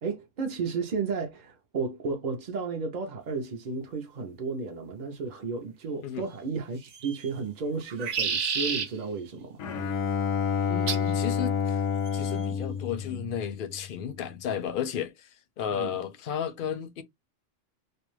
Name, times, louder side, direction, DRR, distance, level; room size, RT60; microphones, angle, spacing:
voice 1, 0.0-9.6 15.7-16.0, right 4 dB, 50° right, 0.5 m, -33 dB
sound 1, 6.8-7.3 7.8-8.9 10.9-11.1 12.1-12.5, right 6 dB, 75° right, 0.9 m, -30 dB
Bowed string instrument, 9.6-13.9, left 6 dB, 90° left, 0.9 m, -29 dB
voice 2, 10.7-11.8 12.1-15.3 15.6-17.0, left 8 dB, 60° left, 0.6 m, -33 dB
2.5 x 2.1 x 3.1 m
omnidirectional pair, 1.3 m